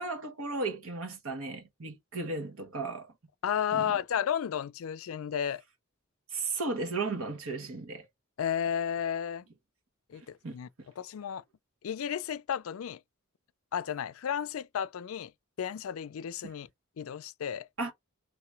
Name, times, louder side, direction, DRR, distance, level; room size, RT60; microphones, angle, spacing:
voice 1, 0.0-3.1 3.7-3.9 6.3-8.1 10.4-10.5 17.8-17.9, right 3 dB, 75° right, 1.3 m, -35 dB
voice 2, 3.4-5.6 8.4-9.4 10.1-10.7 11.0-11.4 11.8-13.0 13.7-15.3 15.6-16.7 17.0-17.7, left 8 dB, 70° left, 0.4 m, -33 dB
3.2 x 2.9 x 4.5 m
head